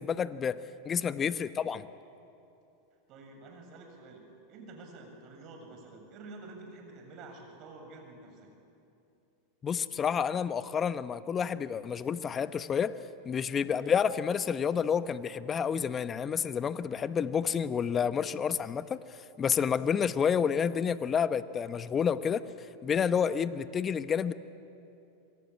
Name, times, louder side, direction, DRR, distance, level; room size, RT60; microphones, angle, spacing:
voice 1, 0.0-1.9 9.6-13.0 13.2-22.4 22.8-24.3, left 7 dB, 30° left, 13 dB, 1.0 m, -29 dB
voice 2, 0.9-1.2 3.1-8.5 13.5-13.7, right 3 dB, 45° right, 3 dB, 7.5 m, -49 dB
26.5 x 23.0 x 8.5 m, 2.7 s
hypercardioid pair, 100°, 0 cm